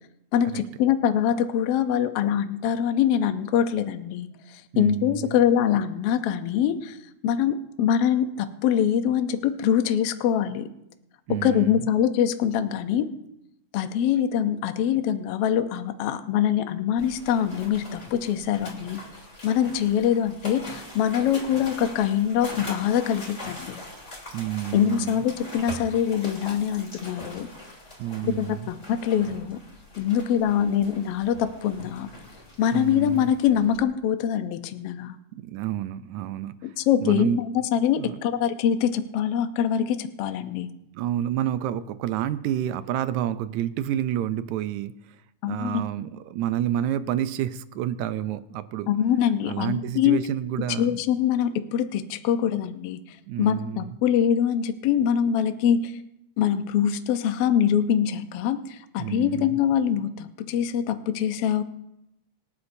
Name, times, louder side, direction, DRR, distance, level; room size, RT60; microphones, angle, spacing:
voice 1, 0.3-7.0 7.2-10.7 11.4-13.1 13.7-19.0 19.4-23.8 24.7-27.5 28.2-29.6 30.0-32.1 32.6-35.2 36.6-40.7 45.4-45.8 48.9-50.2 50.8-53.0 53.4-55.9 56.4-61.6, left 9 dB, 70° left, 9 dB, 1.4 m, -24 dB
voice 2, 4.7-5.4 11.3-11.8 24.3-25.3 28.0-28.7 32.7-33.3 35.3-36.8 37.0-37.4 38.0-38.2 40.9-45.2 45.4-48.9 49.4-51.0 53.3-54.0 59.0-59.6, right 11 dB, 80° right, 13 dB, 1.9 m, -29 dB
sound 1, 17.0-33.8, left 1 dB, 20° left, 3.6 m, -42 dB
25.5 x 9.6 x 2.7 m, 0.83 s
omnidirectional pair, 3.5 m